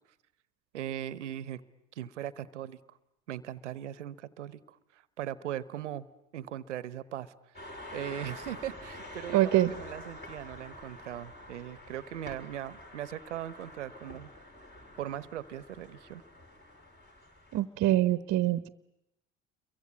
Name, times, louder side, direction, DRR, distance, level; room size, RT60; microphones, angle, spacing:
voice 1, 0.7-1.6 2.0-2.8 3.3-6.1 6.3-7.3 7.9-14.3 15.0-16.2, right 11 dB, 85° right, 18 dB, 1.0 m, -39 dB
sound 1, 7.5-17.6, left 1 dB, 30° left, 6.8 m, -47 dB
voice 2, 9.3-9.7 17.5-18.7, right 14 dB, 50° right, 14 dB, 1.0 m, -25 dB
29.5 x 23.0 x 8.6 m, 0.87 s
hypercardioid pair, 65°, 35 cm